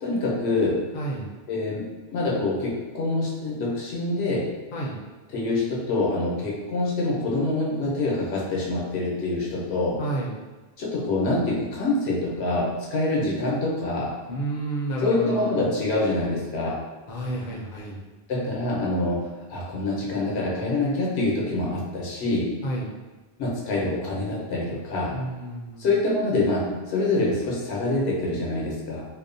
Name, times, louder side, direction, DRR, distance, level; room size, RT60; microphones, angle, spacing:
voice 1, 0.0-0.8 1.5-4.5 5.3-10.0 10.8-14.1 15.0-16.8 18.3-22.5 23.4-25.2 25.8-29.1, left 2 dB, 85° left, -4 dB, 0.9 m, -26 dB
voice 2, 0.9-1.3 4.7-5.0 10.0-10.4 14.3-15.7 17.1-18.0 22.6-22.9 25.1-25.9, right 1 dB, 60° left, -3 dB, 0.6 m, -30 dB
2.6 x 2.1 x 2.5 m, 1.3 s
omnidirectional pair, 1.1 m